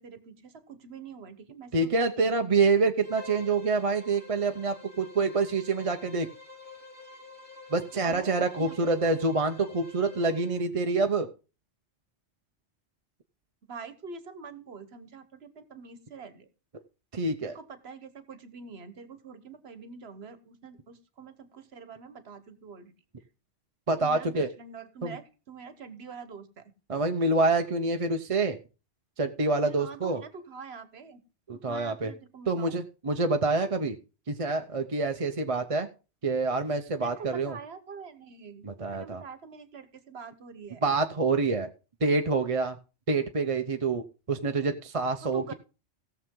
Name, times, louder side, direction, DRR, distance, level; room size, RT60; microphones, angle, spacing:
voice 1, 0.0-3.1 8.0-8.9 13.7-16.5 17.4-22.9 24.0-26.7 29.6-31.2 31.7-32.7 37.0-40.8 45.2-45.5, right 5 dB, 60° right, 12 dB, 1.4 m, -45 dB
voice 2, 1.7-6.3 7.7-11.3 17.1-17.5 23.9-24.5 25.0-25.1 26.9-28.6 29.2-30.2 31.5-32.1 32.5-34.0 34.3-35.9 36.2-37.6 38.6-39.2 40.8-41.7 42.0-42.8 43.1-44.0 44.3-45.5, right 3 dB, 35° right, 6 dB, 0.8 m, -26 dB
Bowed string instrument, 3.0-10.7, left 2 dB, 10° left, 2.3 m, -49 dB
17.0 x 7.0 x 3.7 m, 0.32 s
omnidirectional pair, 1.2 m